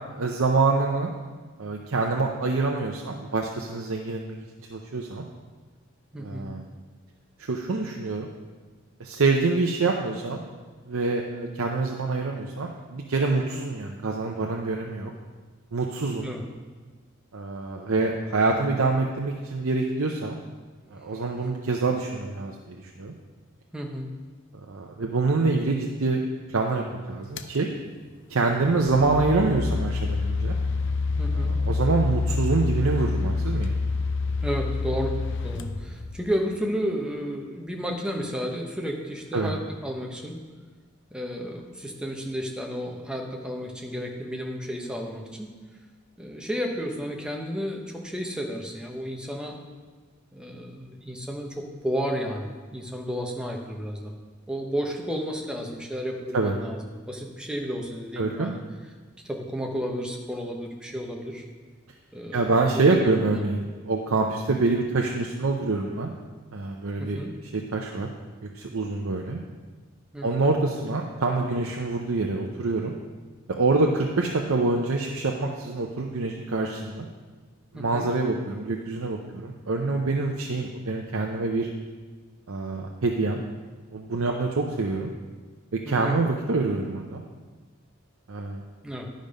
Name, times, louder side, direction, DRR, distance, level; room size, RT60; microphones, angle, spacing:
voice 1, 0.1-1.1 1.6-4.4 4.7-5.2 6.2-6.6 7.4-8.3 9.0-10.4 10.9-15.1 15.7-16.3 17.3-20.4 20.9-23.1 24.7-26.2 26.5-27.7 28.3-30.6 31.3-33.7 39.3-39.5 56.3-56.5 58.2-58.5 62.3-66.1 66.5-68.1 68.4-69.4 70.2-72.9 73.6-77.1 77.7-81.7 82.5-83.4 83.9-85.1 85.9-87.2 88.3-88.6, right 3 dB, 70° right, 1 dB, 0.7 m, -26 dB
voice 2, 6.1-6.5 16.2-16.4 21.1-21.2 23.7-24.1 31.2-31.5 34.4-35.2 35.4-40.4 41.1-45.5 46.2-49.6 50.3-54.1 54.5-58.6 59.2-61.4 62.1-63.5 67.0-67.3 70.1-70.5 77.7-78.1 85.8-86.2 88.8-89.1, equal, 5° right, 1 dB, 0.9 m, -32 dB
sound 1, 27.4-27.6 28.5-36.5, left 3 dB, 60° left, 0.5 m, -27 dB
11.0 x 5.2 x 5.2 m, 1.4 s
head